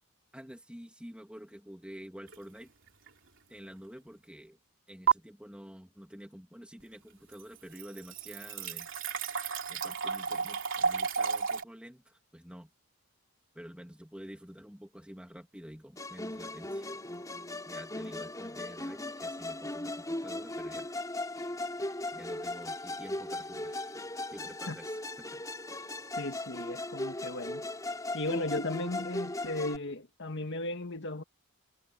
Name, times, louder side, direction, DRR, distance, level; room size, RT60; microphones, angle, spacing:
voice 1, 0.3-2.7 3.5-4.6 4.9-8.9 9.7-12.7 13.5-16.9 17.7-20.9 22.1-23.9 24.3-25.4, equal, 5° right, 2.7 m, -48 dB
sound 1, 2.3-2.6 3.1-3.2 5.1-5.2 6.9-7.0 7.3-11.6, right 6 dB, 60° right, 3.2 m, -32 dB
Musical instrument, 16.0-29.8, left 2 dB, 15° left, 3.9 m, -38 dB
voice 2, 26.2-27.6 28.1-31.2, left 2 dB, 55° left, 1.9 m, -36 dB
head